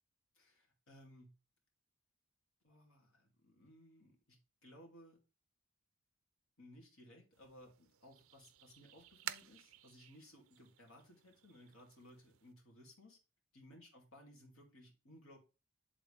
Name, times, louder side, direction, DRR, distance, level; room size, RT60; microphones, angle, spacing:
voice 1, 0.3-1.4 2.6-5.2 6.6-13.2 13.5-15.4, left 1 dB, 85° left, 1 dB, 2.4 m, -60 dB
sound 1, 7.3-12.5, right 12 dB, 75° right, 0.4 m, -53 dB
10.5 x 3.8 x 3.3 m, 0.31 s
head